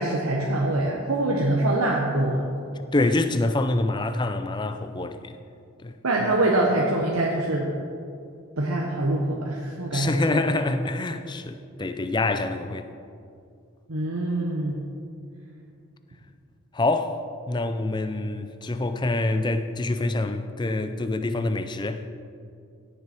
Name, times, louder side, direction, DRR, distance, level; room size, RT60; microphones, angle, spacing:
voice 1, 0.0-2.5 6.0-7.8 8.6-10.4 13.9-14.9, right 1 dB, 85° right, 1.1 m, -24 dB
voice 2, 2.9-5.4 5.8-6.0 9.9-12.9 16.7-22.0, left 2 dB, 20° left, 0.4 m, -26 dB
16.5 x 6.9 x 4.5 m
head